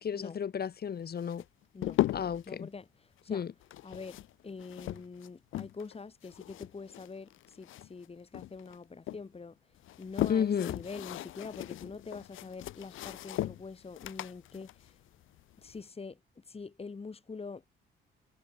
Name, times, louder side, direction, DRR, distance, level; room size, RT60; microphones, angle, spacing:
voice 1, 0.0-1.4 2.1-2.7 3.3-3.5 10.3-10.7, left 7 dB, 50° left, 5.6 m, -32 dB
sound 1, 1.2-2.5 3.6-5.9 6.2-8.1 8.3-9.2 9.7-15.8, left 14 dB, 85° left, 2.2 m, -37 dB
voice 2, 2.5-3.4 3.8-9.6 10.0-15.0 15.6-17.7, left 4 dB, 30° left, 4.7 m, -45 dB
cardioid pair, 90°, 20 cm